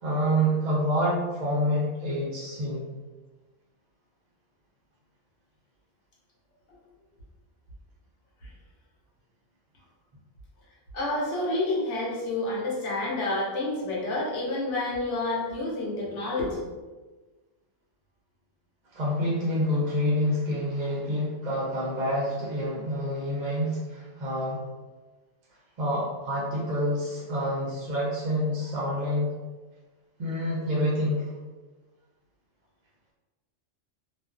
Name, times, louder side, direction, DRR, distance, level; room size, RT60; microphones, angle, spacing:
voice 1, 0.0-2.9 18.9-24.6 25.8-29.3 30.2-31.3, equal, 50° right, -6 dB, 0.5 m, -27 dB
voice 2, 10.9-16.7, left 2 dB, 70° left, -4 dB, 1.0 m, -29 dB
2.4 x 2.3 x 2.3 m, 1.3 s
omnidirectional pair, 1.3 m